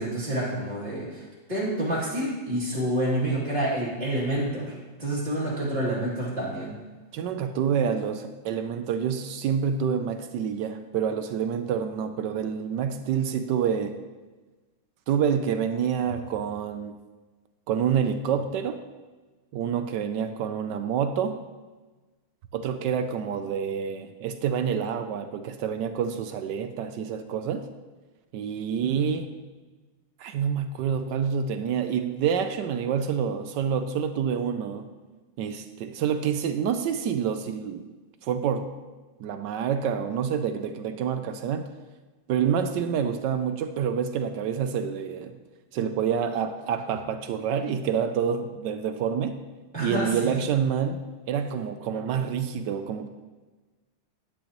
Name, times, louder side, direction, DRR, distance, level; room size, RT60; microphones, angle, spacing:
voice 1, 0.0-6.8 28.8-29.1 49.7-50.3, right 1 dB, 20° right, -8 dB, 2.4 m, -28 dB
voice 2, 7.1-14.0 15.1-17.0 17.7-18.8 19.5-21.4 22.5-27.7 28.3-29.3 30.2-34.9 35.4-37.9 38.2-38.7 39.2-41.7 42.3-45.3 45.7-49.4 49.8-53.1, right 7 dB, 75° right, 9 dB, 1.1 m, -27 dB
10.5 x 10.0 x 3.0 m, 1.3 s
omnidirectional pair, 2.2 m